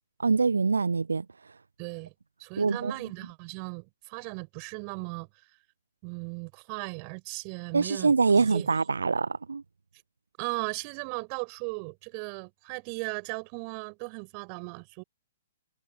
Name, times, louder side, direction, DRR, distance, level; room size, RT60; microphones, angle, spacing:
voice 1, 0.2-1.2 2.6-2.9 7.7-9.6, right 4 dB, 70° right, 0.4 m, -24 dB
voice 2, 1.8-2.1 2.4-5.3 6.0-8.7 10.4-15.0, right 40 dB or more, 35° right, 5.9 m, -37 dB
figure-of-eight pair, 120°, 0 cm